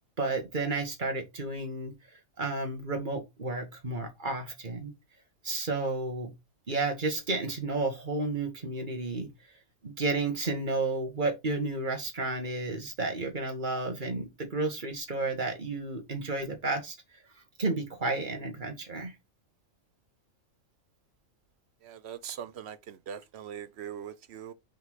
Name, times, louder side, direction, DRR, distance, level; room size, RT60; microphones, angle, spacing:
voice 1, 0.2-1.9 2.4-4.9 5.4-6.3 6.7-9.3 9.8-16.9 17.6-19.1, right 3 dB, 35° right, 1.6 m, -32 dB
voice 2, 21.8-24.5, right 9 dB, 60° right, 0.9 m, -41 dB
5.1 x 3.9 x 4.7 m
omnidirectional pair, 1.4 m